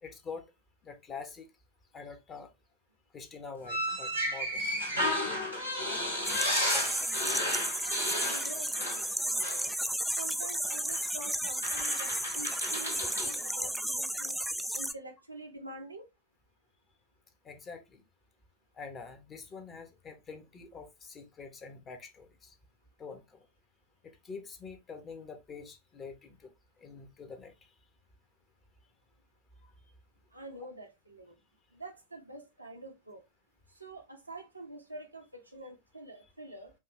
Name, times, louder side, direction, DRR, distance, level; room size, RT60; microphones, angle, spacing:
voice 1, 0.0-0.5 0.8-1.5 1.9-2.5 3.1-4.6 6.6-7.0 17.4-18.0 18.8-22.5 23.0-23.4 24.0-26.5 26.8-27.5, left 5 dB, 25° left, 1.0 m, -45 dB
sound 1, 3.7-9.1 9.4-9.7 10.9-11.0 11.6-13.4, left 1 dB, 85° left, 2.5 m, -33 dB
sound 2, 6.2-14.9, right 1 dB, ahead, 0.3 m, -33 dB
voice 2, 7.0-7.5 7.8-9.7 10.2-14.4 14.7-16.0 30.3-31.4 31.7-33.2 33.8-36.7, right 1 dB, 85° right, 1.0 m, -46 dB
5.5 x 2.5 x 3.1 m
figure-of-eight pair, 90°, 0 cm